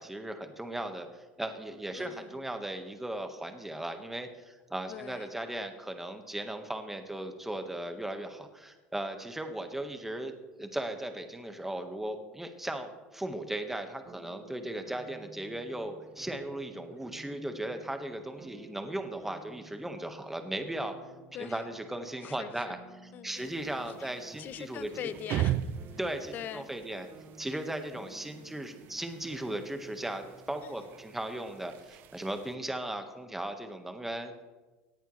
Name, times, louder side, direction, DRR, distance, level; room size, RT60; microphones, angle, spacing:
voice 1, 0.0-10.3 10.6-20.9 21.4-22.8 23.2-24.9 26.0-27.1 27.4-34.5, right 1 dB, 5° right, 6 dB, 1.5 m, -37 dB
voice 2, 1.9-2.4 4.9-5.3 21.3-21.6 22.2-22.8 23.1-23.6 24.0-26.0 26.3-26.7 30.6-30.9, left 10 dB, 50° left, 13 dB, 0.8 m, -43 dB
sound 1, 14.0-31.9, right 3 dB, 30° right, 2.1 m, -54 dB
sound 2, 23.3-32.6, right 12 dB, 55° right, 0.5 m, -40 dB
17.5 x 10.5 x 3.3 m, 1.2 s
supercardioid pair, 110°, 4 cm